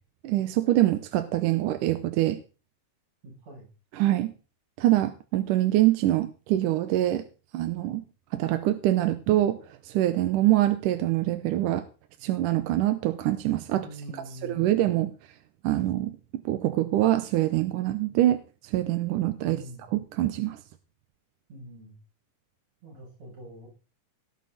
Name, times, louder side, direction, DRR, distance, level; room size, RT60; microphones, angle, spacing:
voice 1, 0.2-2.4 3.9-4.3 4.8-7.2 7.5-8.0 8.3-9.6 9.8-11.8 12.2-13.9 14.1-15.1 15.6-16.2 16.5-19.6 19.9-20.6, right 14 dB, 75° right, 10 dB, 2.4 m, -24 dB
voice 2, 3.2-3.7 13.7-14.8 19.4-19.9 21.5-21.9 22.8-23.7, equal, 50° right, -6 dB, 8.4 m, -44 dB
18.0 x 9.3 x 4.1 m, 0.35 s
omnidirectional pair, 3.8 m